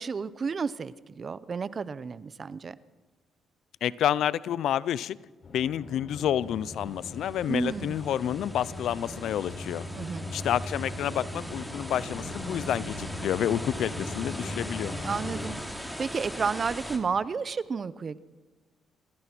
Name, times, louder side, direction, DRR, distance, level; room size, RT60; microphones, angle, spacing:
voice 1, 0.0-2.8 7.5-8.0 10.0-10.3 15.0-18.2, right 5 dB, 40° right, 17 dB, 0.8 m, -32 dB
voice 2, 3.8-5.2 5.5-9.9 10.3-15.0, left 10 dB, 75° left, 20 dB, 0.5 m, -29 dB
sound 1, 5.4-15.5, left 1 dB, 55° left, 5.7 m, -39 dB
sound 2, 6.7-17.0, equal, ahead, 2.8 m, -41 dB
28.0 x 15.0 x 6.1 m, 1.3 s
cardioid pair, 90°, 0 cm